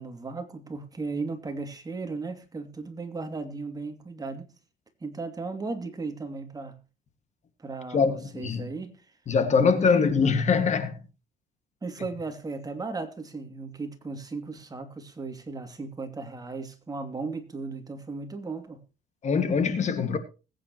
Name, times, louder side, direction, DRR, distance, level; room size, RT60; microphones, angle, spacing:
voice 1, 0.0-4.5 5.0-6.8 7.6-9.0 9.5-10.1 11.8-18.8, right 3 dB, 20° right, 2.6 m, -36 dB
voice 2, 7.9-8.7 9.3-11.0 19.2-20.2, left 5 dB, 45° left, 2.0 m, -23 dB
20.5 x 9.2 x 3.0 m
cardioid pair, 110°, 17 cm